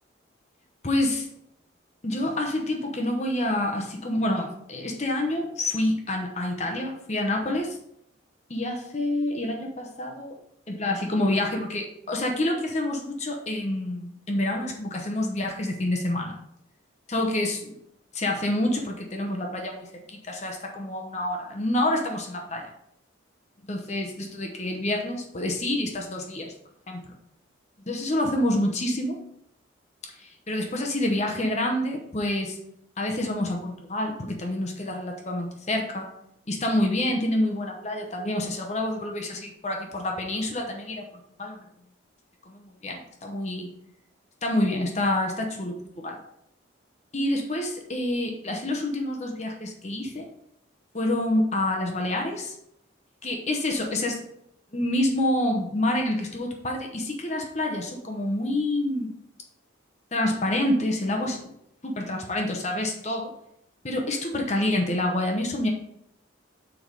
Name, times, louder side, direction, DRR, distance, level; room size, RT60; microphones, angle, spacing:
voice 1, 0.8-1.2 2.0-7.8 8.5-10.4 10.7-16.4 17.1-17.8 18.1-22.7 23.6-26.5 26.9-27.2 27.8-29.2 30.1-32.6 33.0-36.1 36.5-41.1 41.4-41.6 42.5-43.7 44.4-46.2 47.1-50.3 50.9-52.5 53.2-54.2 54.7-59.2 60.1-61.5 61.8-63.3 63.8-65.7, left 1 dB, 35° left, 2 dB, 0.9 m, -27 dB
6.3 x 4.7 x 5.1 m, 0.75 s
head